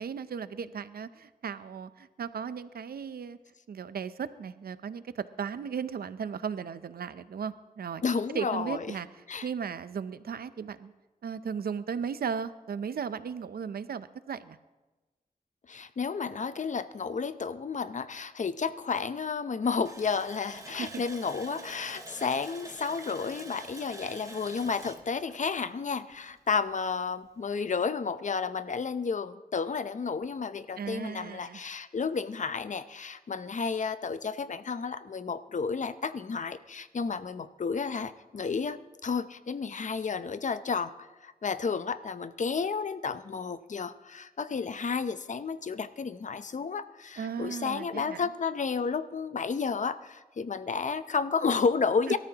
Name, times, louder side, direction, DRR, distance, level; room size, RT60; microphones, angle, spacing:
voice 1, 0.0-3.4 3.7-8.0 8.3-9.1 9.4-10.9 11.2-14.6 20.8-21.0 21.5-21.7 30.8-31.6 47.2-48.2 52.1-52.2, right 6 dB, 85° right, 14 dB, 0.6 m, -36 dB
voice 2, 8.0-8.9 9.3-9.5 15.7-52.2, left 5 dB, 55° left, 12 dB, 0.6 m, -32 dB
Water tap faucet, 19.8-26.3 26.7-26.8 27.2-27.4, right 2 dB, 20° right, 1.3 m, -46 dB
24.5 x 13.0 x 2.9 m, 1.2 s
wide cardioid pair, 85°, 15 cm